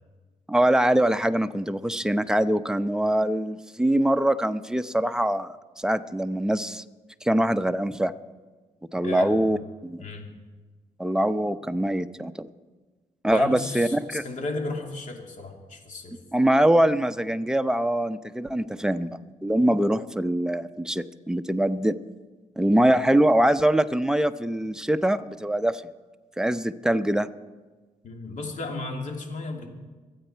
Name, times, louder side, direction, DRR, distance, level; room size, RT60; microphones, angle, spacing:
voice 1, 0.5-6.8 7.2-8.1 8.9-9.6 9.8-10.0 11.0-12.5 13.2-14.2 16.3-22.0 22.6-25.8 26.4-27.3, right 1 dB, 5° right, 9 dB, 0.7 m, -23 dB
voice 2, 9.0-9.6 10.0-10.3 13.3-16.2 28.0-29.7, left 2 dB, 60° left, 2 dB, 2.8 m, -34 dB
25.5 x 9.1 x 4.6 m, 1.3 s
cardioid pair, 65°, 15 cm